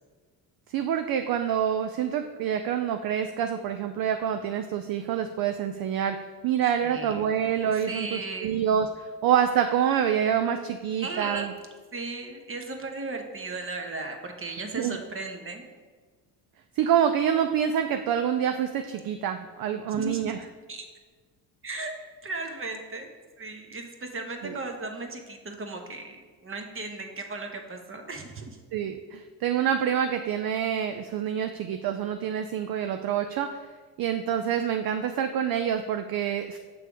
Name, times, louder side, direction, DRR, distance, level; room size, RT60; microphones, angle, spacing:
voice 1, 0.7-11.5 14.7-15.0 16.8-20.4 24.4-24.5 28.7-33.6 34.0-36.6, right 9 dB, 50° right, 7 dB, 0.5 m, -27 dB
voice 2, 6.8-7.3 7.9-8.6 11.0-11.5 11.9-15.7 20.0-20.3 20.7-20.9 21.6-21.9 22.2-23.1 23.4-28.6, right 3 dB, 25° right, 4 dB, 1.0 m, -36 dB
6.9 x 3.3 x 4.9 m, 1.4 s
supercardioid pair, 70°, 48 cm